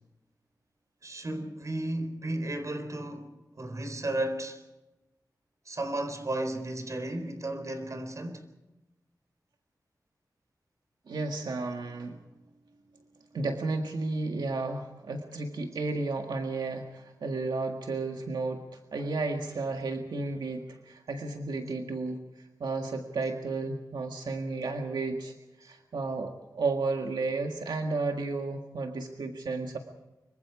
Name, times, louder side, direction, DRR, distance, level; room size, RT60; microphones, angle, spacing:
voice 1, 1.0-3.3 3.6-4.6 5.7-8.4 25.6-25.7, right 1 dB, 45° right, 4.3 m, -34 dB
voice 2, 11.1-12.2 13.3-22.2 22.6-29.8, right 3 dB, 85° right, 1.8 m, -33 dB
25.5 x 24.0 x 4.9 m
wide cardioid pair, 75°, 7 cm